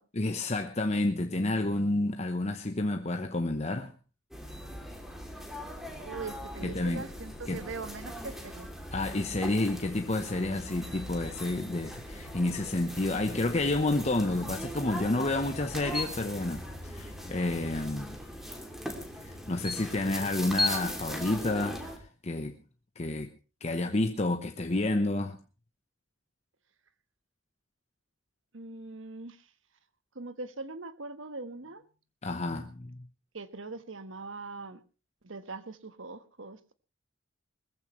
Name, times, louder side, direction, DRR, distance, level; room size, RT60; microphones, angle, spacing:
voice 1, 0.2-3.9 6.6-7.0 7.5-7.6 8.9-18.2 19.2-22.6 23.0-23.3 23.6-25.4 32.2-33.0, left 2 dB, 35° left, 1.0 m, -30 dB
sound 1, 4.3-22.0, equal, ahead, 2.9 m, -39 dB
voice 2, 6.0-8.7 28.5-29.4 30.1-31.8 33.3-34.8 35.2-36.7, right 3 dB, 70° right, 1.4 m, -41 dB
21.0 x 15.0 x 3.2 m
head